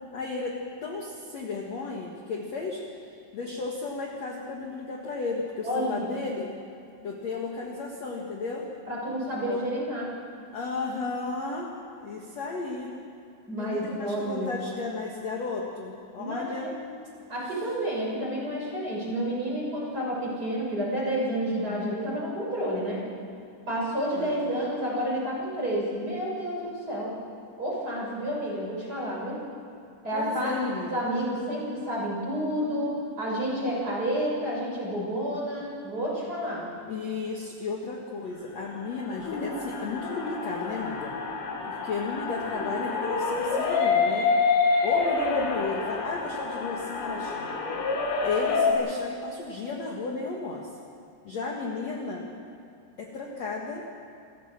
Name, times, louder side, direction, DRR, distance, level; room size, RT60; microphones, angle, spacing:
voice 1, 0.1-2.8 3.1-6.5 7.0-8.7 9.5-9.6 10.5-11.7 12.0-12.9 13.5-16.7 24.2-24.5 30.1-31.0 36.9-41.1 41.7-44.3 44.8-47.5 48.2-50.7 51.2-52.3 53.0-53.8, left 4 dB, 60° left, -1 dB, 1.8 m, -34 dB
voice 2, 5.6-6.1 8.9-10.1 13.5-14.6 16.2-16.8 17.3-23.0 23.7-27.1 27.6-29.4 30.0-36.6, equal, 20° right, -4 dB, 6.8 m, -30 dB
sound 1, 38.9-48.7, left 4 dB, 85° left, 5.2 m, -27 dB
28.0 x 15.0 x 7.5 m, 2.6 s
omnidirectional pair, 5.7 m